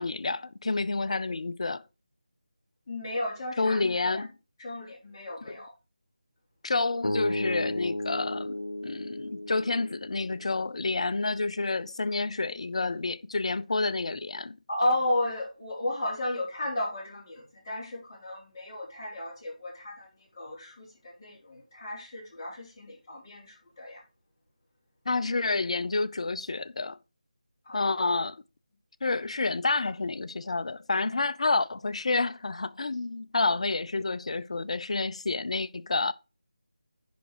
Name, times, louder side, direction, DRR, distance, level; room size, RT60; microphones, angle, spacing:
voice 1, 0.0-1.8 3.6-4.3 6.6-14.6 25.1-27.0 27.7-28.4 29.0-36.1, left 3 dB, 55° left, 0.5 m, -29 dB
voice 2, 2.9-4.2 4.6-5.7 14.7-24.0 27.6-28.1, left 1 dB, 30° left, 3.9 m, -34 dB
sound 1, 7.0-11.2, left 1 dB, 85° left, 1.1 m, -34 dB
10.5 x 4.9 x 4.7 m
figure-of-eight pair, 165°, 4 cm